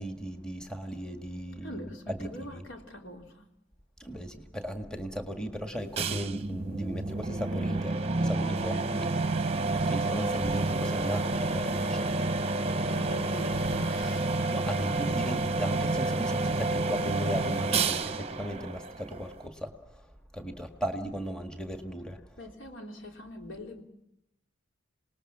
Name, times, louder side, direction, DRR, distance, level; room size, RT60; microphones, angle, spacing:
voice 1, 0.0-2.7 4.0-8.0 8.2-9.1 9.5-12.1 14.5-22.5, equal, 5° left, 1.8 m, -37 dB
voice 2, 1.6-3.5 8.7-9.2 12.8-14.4 22.4-23.8, equal, 65° left, 3.6 m, -43 dB
sound 1, 6.0-19.5, right 3 dB, 30° right, 0.9 m, -29 dB
27.0 x 19.5 x 7.4 m
head